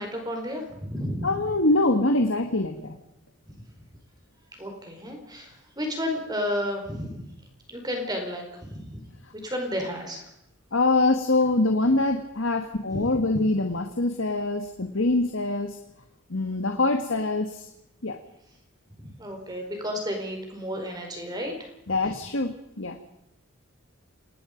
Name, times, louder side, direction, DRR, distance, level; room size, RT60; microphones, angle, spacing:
voice 1, 0.0-1.3 4.6-7.2 7.7-9.0 9.4-10.2 12.9-13.4 19.2-21.7, equal, 20° right, 3 dB, 4.6 m, -32 dB
voice 2, 1.2-3.0 10.7-15.8 16.3-17.7 18.0-18.2 21.9-23.0, left 2 dB, 60° left, 6 dB, 1.7 m, -24 dB
28.5 x 20.0 x 5.2 m, 0.82 s
head